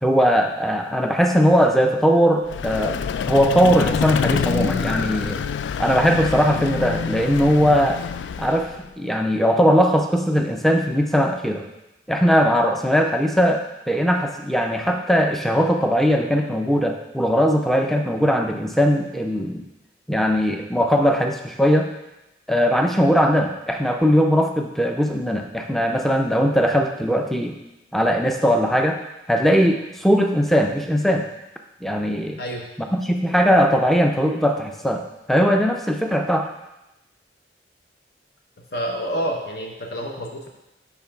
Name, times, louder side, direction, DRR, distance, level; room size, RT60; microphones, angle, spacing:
voice 1, 0.0-5.4 5.8-8.0 8.4-11.6 12.1-19.6 20.1-21.9 22.5-27.6 27.9-29.0 29.3-31.3 31.8-32.4 32.8-35.0 35.3-36.5, equal, ahead, 3 dB, 0.5 m, -19 dB
Vehicle, 2.5-8.9, left 6 dB, 85° left, 0.3 m, -26 dB
voice 2, 38.7-40.5, equal, 60° left, 1 dB, 0.9 m, -28 dB
5.6 x 4.4 x 5.8 m, 0.94 s
head